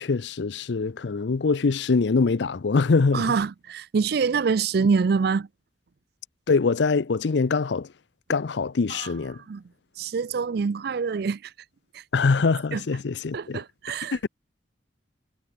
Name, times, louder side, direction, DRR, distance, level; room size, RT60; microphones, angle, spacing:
voice 1, 0.0-3.3 6.5-7.9 8.3-9.4 12.1-13.6 14.1-14.3, left 4 dB, 70° left, 0.5 m, -23 dB
voice 2, 3.1-5.5 8.9-9.1 9.5-9.6 10.0-11.5 11.9-12.0 12.7-12.8 13.3-14.3, right 5 dB, 55° right, 0.4 m, -25 dB
head